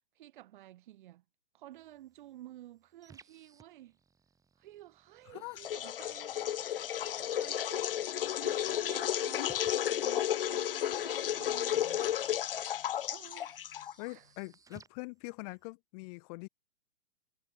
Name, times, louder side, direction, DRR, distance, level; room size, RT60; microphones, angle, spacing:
voice 1, 0.2-1.2 1.5-4.0 4.6-6.3 7.1-7.9 8.2-12.1 13.1-13.6 14.1-14.3, right 14 dB, 40° right, 2.1 m, -52 dB
sound 1, 1.7-15.7, right 5 dB, 10° right, 3.1 m, -62 dB
voice 2, 5.3-5.6 14.0-16.5, left 29 dB, 30° left, 2.8 m, -43 dB
sound 2, 5.6-14.1, left 11 dB, 50° left, 0.6 m, -33 dB
figure-of-eight pair, 120°, 38 cm